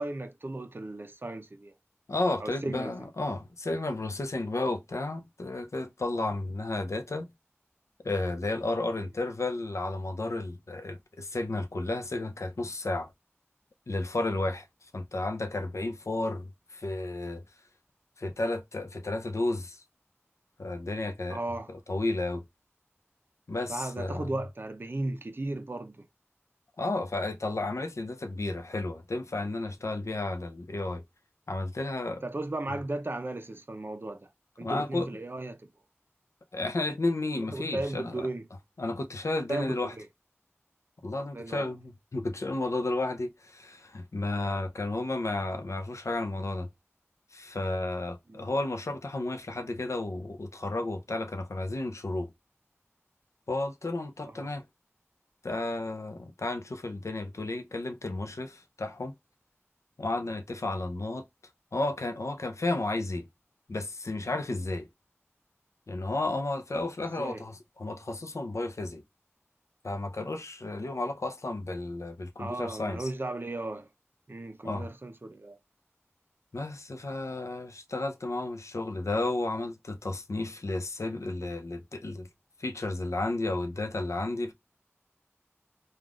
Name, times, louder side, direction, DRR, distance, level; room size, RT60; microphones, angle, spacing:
voice 1, 0.0-1.7 2.4-3.1 21.3-21.7 23.7-26.1 32.1-34.3 34.6-35.7 37.5-38.4 39.5-40.1 41.3-41.7 48.3-48.5 54.3-54.5 67.2-67.4 72.4-73.9 74.3-75.6, right 2 dB, 50° right, 0.6 m, -36 dB
voice 2, 2.1-7.3 8.0-13.1 13.9-14.7 14.9-17.4 18.2-19.8 20.6-21.4 21.7-22.4 23.5-24.2 26.8-31.0 31.5-32.2 34.6-35.1 36.5-38.3 38.8-39.9 41.0-46.7 47.3-52.3 53.5-54.6 55.4-59.1 60.0-61.3 61.7-63.3 63.7-64.9 65.9-67.5 67.8-69.0 69.8-73.1 74.6-74.9 76.5-82.3 82.6-84.5, left 2 dB, 90° left, 0.5 m, -32 dB
3.4 x 2.4 x 2.3 m
wide cardioid pair, 50°, 5 cm